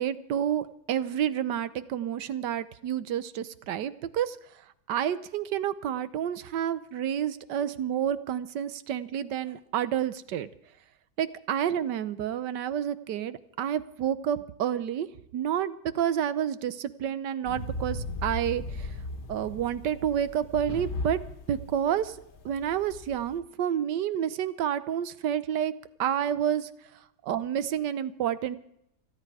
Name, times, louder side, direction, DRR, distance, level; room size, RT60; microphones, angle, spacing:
voice 1, 0.0-4.4 4.9-10.5 11.2-15.1 15.3-18.9 19.3-21.2 21.5-22.2 22.4-25.7 26.0-26.7 27.2-28.6, right 9 dB, 80° right, 14 dB, 1.4 m, -29 dB
sound 1, 17.4-23.4, left 2 dB, 55° left, 1.8 m, -37 dB
28.5 x 10.0 x 4.8 m, 0.77 s
omnidirectional pair, 1.8 m